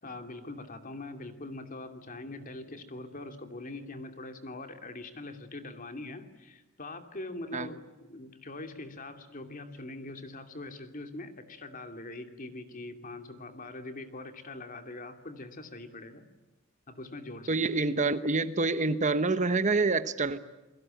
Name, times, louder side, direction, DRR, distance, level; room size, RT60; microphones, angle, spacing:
voice 1, 0.0-16.3 16.9-17.8, left 2 dB, 40° left, 6 dB, 2.7 m, -43 dB
voice 2, 17.5-20.4, right 3 dB, 35° right, 12 dB, 1.0 m, -27 dB
29.5 x 21.5 x 9.1 m, 1.1 s
head